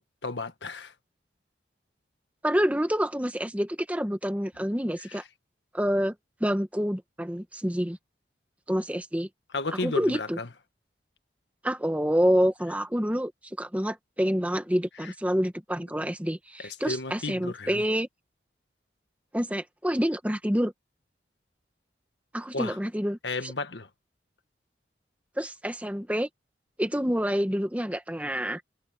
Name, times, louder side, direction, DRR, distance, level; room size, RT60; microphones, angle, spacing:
voice 1, 0.2-0.9 5.1-5.2 9.5-10.5 15.0-15.1 16.6-17.8 22.5-22.8 23.2-23.9, left 3 dB, 85° left, 1.7 m, -33 dB
voice 2, 2.4-5.2 5.7-6.1 6.4-8.0 8.7-9.3 9.8-10.4 11.6-13.3 13.6-18.1 19.3-20.7 22.3-23.5 25.4-26.3 26.8-28.6, equal, 10° right, 1.4 m, -27 dB
head